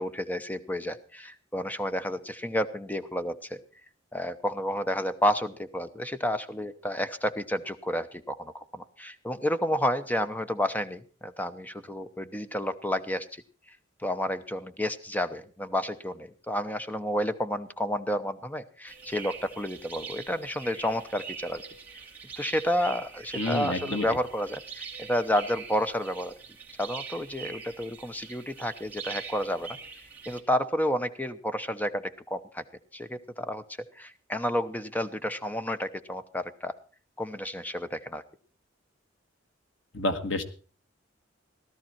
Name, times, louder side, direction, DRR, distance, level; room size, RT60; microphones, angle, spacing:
voice 1, 0.0-3.6 4.1-13.3 14.0-21.6 22.4-26.3 26.8-29.8 30.3-32.6 32.9-33.6 34.0-36.7 37.2-38.2, equal, 10° left, 11 dB, 0.8 m, -30 dB
sound 1, 18.9-30.4, right 5 dB, 10° right, 2.7 m, -43 dB
voice 2, 23.3-24.0 39.9-40.4, left 2 dB, 80° left, 8 dB, 1.5 m, -29 dB
17.0 x 12.5 x 4.4 m, 0.37 s
head